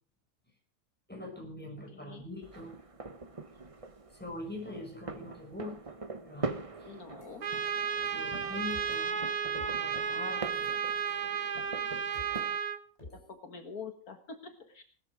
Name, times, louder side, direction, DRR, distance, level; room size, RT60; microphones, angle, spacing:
voice 1, 1.1-2.8 4.1-5.7 6.2-6.9 8.1-9.2 9.6-10.7, left 2 dB, 5° left, 1 dB, 6.5 m, -43 dB
voice 2, 1.9-2.2 6.9-7.5 13.1-14.8, left 5 dB, 70° left, 6 dB, 2.0 m, -46 dB
sound 1, 2.4-12.6, right 3 dB, 25° right, 1.0 m, -43 dB
sound 2, 7.2-8.4 8.7-12.4 13.0-13.3, left 2 dB, 25° left, 8.0 m, -54 dB
Trumpet, 7.4-12.8, right 7 dB, 70° right, 1.7 m, -33 dB
19.5 x 13.5 x 4.9 m, 0.42 s
omnidirectional pair, 1.6 m